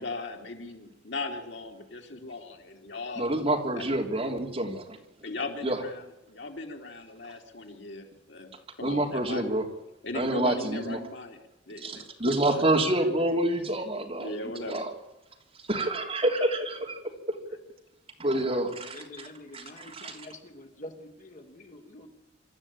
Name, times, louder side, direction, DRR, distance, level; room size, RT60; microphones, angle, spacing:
voice 1, 0.0-3.3 3.8-3.9 5.2-8.5 8.8-9.5 10.0-12.6 14.2-14.8, left 2 dB, 80° left, 3 dB, 3.3 m, -38 dB
voice 2, 3.2-5.0 5.6-5.8 8.8-9.6 10.1-11.0 11.8-14.9 15.7-17.0 18.2-19.3 19.5-20.2, right 1 dB, 35° right, 2 dB, 3.3 m, -28 dB
voice 3, 18.3-22.1, left 1 dB, 45° left, 4 dB, 3.1 m, -46 dB
26.0 x 13.5 x 8.7 m, 0.98 s
head